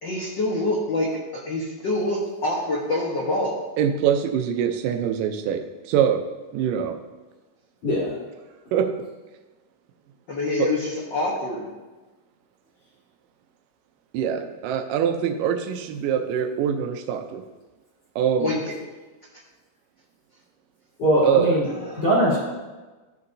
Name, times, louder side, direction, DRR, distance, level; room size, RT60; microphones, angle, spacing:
voice 1, 0.0-3.6 10.3-11.7 18.4-18.6 21.7-22.1, left 2 dB, 70° left, -3 dB, 1.0 m, -26 dB
voice 2, 3.8-6.2 6.5-7.0 8.7-8.9 10.6-10.7 14.1-17.4 18.2-18.5 21.2-21.6, right 8 dB, 80° right, 6 dB, 2.3 m, -23 dB
voice 3, 7.8-8.1 21.0-21.7 22.0-22.4, equal, 45° left, -9 dB, 3.8 m, -20 dB
14.0 x 6.7 x 2.7 m, 1.2 s
omnidirectional pair, 3.9 m